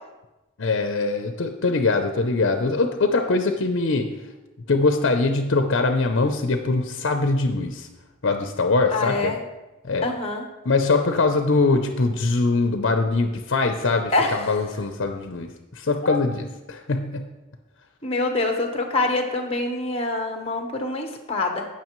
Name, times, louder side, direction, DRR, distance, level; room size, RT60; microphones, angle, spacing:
voice 1, 0.6-4.1 4.7-7.9 8.2-9.3 9.8-10.1 10.6-17.3, left 3 dB, 65° left, 6 dB, 0.6 m, -22 dB
voice 2, 8.9-9.4 10.0-10.5 14.1-14.5 16.0-16.2 18.0-21.7, left 2 dB, 30° left, 4 dB, 1.1 m, -25 dB
16.0 x 5.8 x 3.1 m, 1.1 s
head